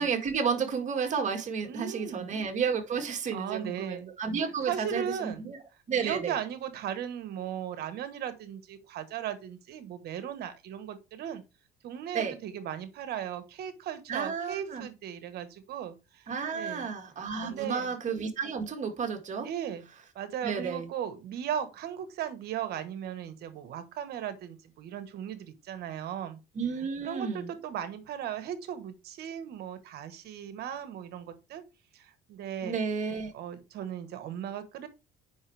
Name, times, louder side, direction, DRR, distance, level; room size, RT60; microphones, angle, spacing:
voice 1, 0.0-5.6 5.9-6.4 12.1-12.3 14.1-14.8 16.3-19.5 20.4-20.9 26.6-27.5 32.6-33.3, right 6 dB, 45° right, 1.8 m, -32 dB
voice 2, 1.7-2.3 3.3-4.1 4.4-5.5 6.0-11.4 11.8-16.9 17.4-17.9 19.4-19.9 20.1-26.4 27.0-31.6 31.9-32.8 33.3-34.9, right 9 dB, 70° right, 1.3 m, -37 dB
8.7 x 5.6 x 3.3 m
cardioid pair, 110°, 17 cm